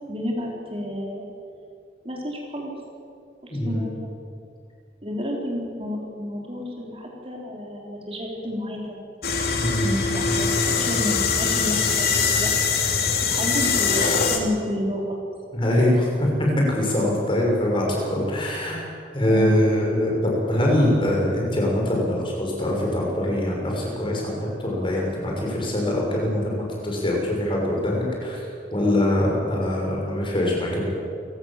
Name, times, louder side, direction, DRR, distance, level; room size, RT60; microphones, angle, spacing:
voice 1, 0.1-1.3 2.0-2.7 3.4-4.1 5.0-9.0 9.8-12.5 13.2-15.2 18.5-18.8 19.3-19.6, left 1 dB, 35° right, -1 dB, 4.4 m, -30 dB
voice 2, 3.5-3.9 9.6-9.9 15.5-18.8 19.1-28.5 28.7-30.9, left 1 dB, 30° left, -2 dB, 6.6 m, -23 dB
sound 1, 9.2-14.4, left 5 dB, 60° left, 3.0 m, -22 dB
29.0 x 17.5 x 7.6 m, 2.4 s
head